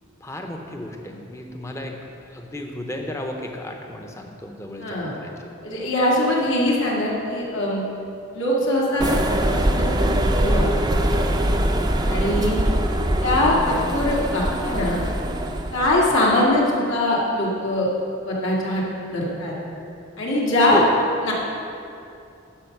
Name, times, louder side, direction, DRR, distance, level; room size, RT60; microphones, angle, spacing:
voice 1, 0.2-2.0 2.3-5.3 20.7-20.9, left 1 dB, 15° left, 3 dB, 0.8 m, -32 dB
voice 2, 4.8-5.1 5.6-7.8 8.3-10.1 10.4-10.6 12.0-12.5 13.2-15.0 15.7-17.9 18.2-19.5 20.2-20.8 21.2-21.3, left 1 dB, 70° left, -5 dB, 2.0 m, -22 dB
sound 1, 9.0-15.9, right 1 dB, 20° right, 0.6 m, -22 dB
12.0 x 5.2 x 6.6 m, 2.7 s
head